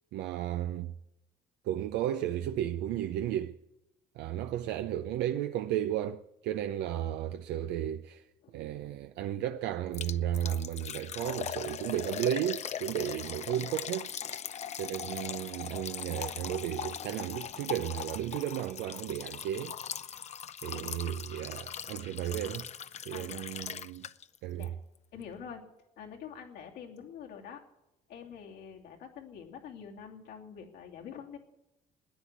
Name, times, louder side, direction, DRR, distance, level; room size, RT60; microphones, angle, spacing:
voice 1, 0.1-0.9 1.6-3.6 4.2-8.3 8.5-14.1 14.8-19.8 20.6-22.7 23.1-24.1 24.4-24.7, right 11 dB, 85° right, 0.6 m, -34 dB
Liquid, 9.9-24.4 24.6-24.7 25.2-25.3, left 8 dB, 40° left, 0.6 m, -40 dB
voice 2, 23.1-23.5 24.5-24.8 25.1-25.6 26.0-27.6 28.1-31.4, left 7 dB, 85° left, 2.8 m, -46 dB
14.0 x 10.0 x 9.7 m
cardioid pair, 110°, 17 cm